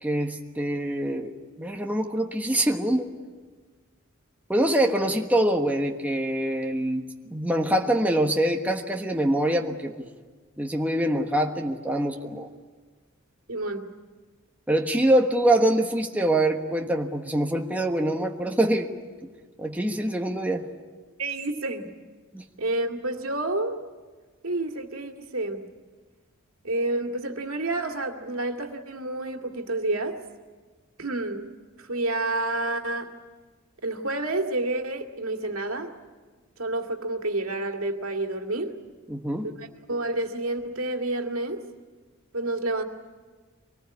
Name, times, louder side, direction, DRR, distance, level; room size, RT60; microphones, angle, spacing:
voice 1, 0.0-3.1 4.5-7.0 7.3-9.9 10.6-12.5 14.7-18.9 19.6-20.7 22.3-22.4 39.1-39.5, right 1 dB, 10° right, 2 dB, 1.3 m, -24 dB
voice 2, 13.5-13.8 21.2-21.9 22.6-23.8 24.4-25.6 26.6-30.2 31.0-31.4 31.8-33.1 33.8-35.9 36.6-38.7 39.9-41.6 42.3-42.8, right 2 dB, 75° right, 4 dB, 2.3 m, -29 dB
25.0 x 19.5 x 9.6 m, 1.4 s
head